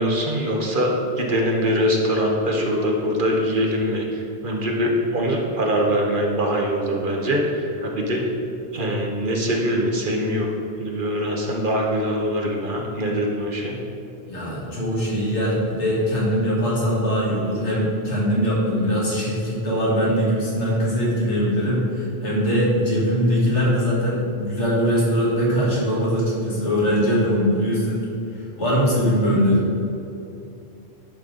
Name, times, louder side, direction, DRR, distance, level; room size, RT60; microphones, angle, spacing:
voice 1, 0.0-8.3 8.7-10.5 10.8-13.8, equal, 50° right, 0 dB, 1.1 m, -23 dB
voice 2, 14.3-28.0 28.4-29.6, equal, 85° left, -6 dB, 2.4 m, -21 dB
10.5 x 5.3 x 3.8 m, 2.7 s
omnidirectional pair, 1.2 m